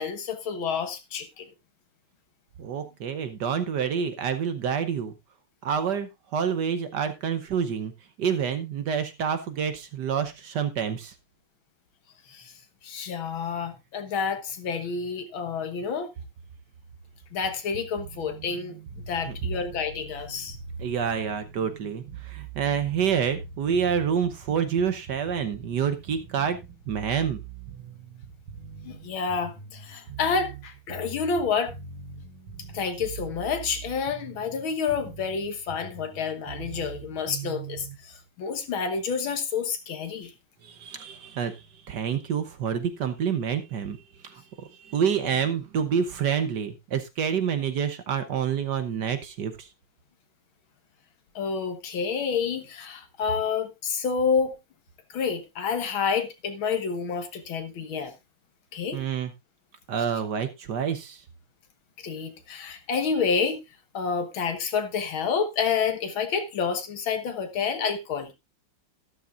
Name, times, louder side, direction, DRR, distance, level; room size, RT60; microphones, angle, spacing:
voice 1, 0.0-1.5 12.3-12.5 12.8-16.1 17.3-20.6 28.8-31.7 32.7-40.3 51.4-54.6 55.1-58.1 58.7-59.0 62.0-63.6 63.9-68.3, left 6 dB, 70° left, 2.1 m, -29 dB
voice 2, 2.6-5.1 5.6-7.9 8.2-11.1 19.3-19.4 20.8-26.6 26.9-27.4 40.6-49.7 58.9-59.3 59.9-61.2, right 7 dB, 60° right, 1.3 m, -28 dB
sound 1, 18.0-38.0, right 6 dB, 85° right, 2.0 m, -42 dB
12.5 x 12.0 x 2.5 m
omnidirectional pair, 2.3 m